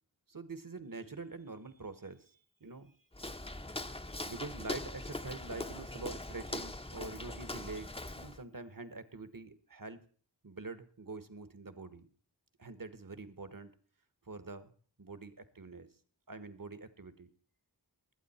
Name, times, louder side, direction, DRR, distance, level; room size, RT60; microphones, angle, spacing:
voice 1, 0.3-2.9 4.3-10.0 10.4-12.1 12.6-13.7 14.3-14.7 15.0-15.9 16.3-17.3, right 3 dB, 55° right, 13 dB, 1.3 m, -45 dB
Walk footsteps, 3.1-8.4, left 2 dB, 15° left, 0.7 m, -41 dB
20.0 x 8.7 x 4.3 m, 0.43 s
wide cardioid pair, 45°, 41 cm